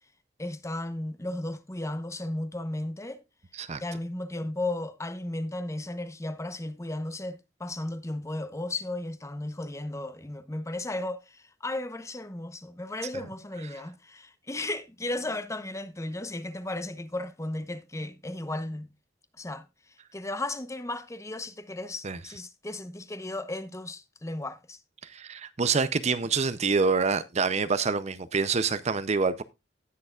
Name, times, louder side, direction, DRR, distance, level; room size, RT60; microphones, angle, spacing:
voice 1, 0.4-3.2 3.8-18.9 19.4-24.8, left 1 dB, 15° left, 0.9 m, -35 dB
voice 2, 25.1-29.4, right 4 dB, 40° right, 0.6 m, -26 dB
17.5 x 6.7 x 2.4 m
head